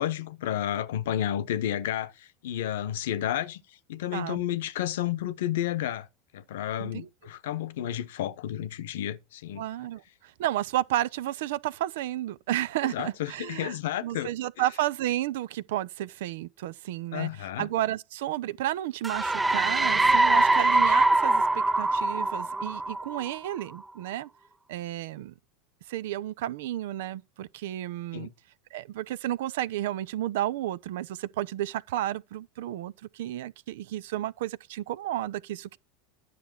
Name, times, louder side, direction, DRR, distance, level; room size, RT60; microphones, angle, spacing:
voice 1, 0.0-3.6 3.9-6.1 6.3-9.6 12.9-14.3 17.1-17.7 28.1-28.3, left 11 dB, 70° left, 0.9 m, -31 dB
voice 2, 4.1-4.4 6.8-7.1 9.6-17.3 17.6-24.3 24.7-25.3 25.9-28.3 28.7-35.8, right 14 dB, 70° right, 0.6 m, -32 dB
sound 1, 19.0-23.6, right 2 dB, 15° right, 0.6 m, -23 dB
11.0 x 6.7 x 4.5 m
hypercardioid pair, 80°, 0 cm